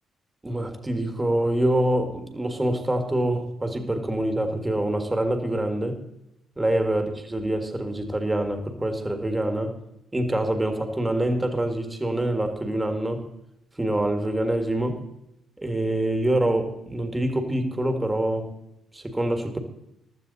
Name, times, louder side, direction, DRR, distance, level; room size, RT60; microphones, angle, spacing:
voice 1, 0.4-6.0 6.6-9.7 10.1-13.3 13.8-15.0 15.6-18.5 18.9-19.6, right 1 dB, 15° right, 6 dB, 1.9 m, -25 dB
15.5 x 12.0 x 4.2 m, 0.84 s
cardioid pair, 90°, 0 cm